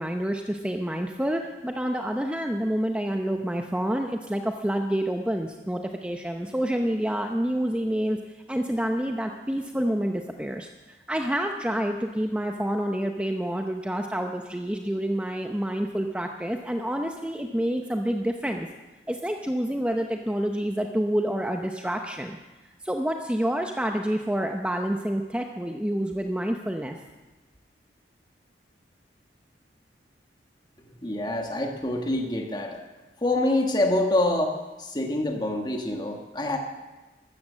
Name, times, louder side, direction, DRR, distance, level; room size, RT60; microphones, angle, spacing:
voice 1, 0.0-8.2 8.5-18.7 19.1-22.4 22.8-27.0, equal, 5° right, 4 dB, 0.7 m, -28 dB
voice 2, 31.0-32.8 33.2-36.6, left 1 dB, 25° left, 3 dB, 1.4 m, -26 dB
14.0 x 13.0 x 7.3 m, 1.2 s
head